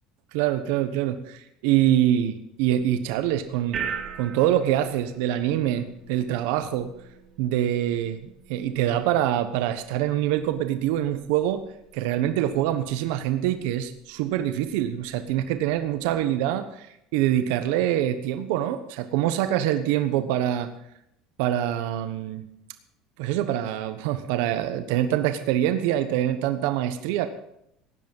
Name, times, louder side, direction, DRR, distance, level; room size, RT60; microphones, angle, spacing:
voice 1, 0.3-3.8 4.2-6.9 7.4-11.6 11.9-16.9 17.1-20.7 21.4-22.5 23.2-27.3, right 12 dB, 70° right, 9 dB, 1.1 m, -25 dB
sound 1, 2.8-16.2, right 7 dB, 30° right, 2.3 m, -43 dB
16.5 x 10.5 x 5.5 m, 0.77 s
cardioid pair, 165°, 0 cm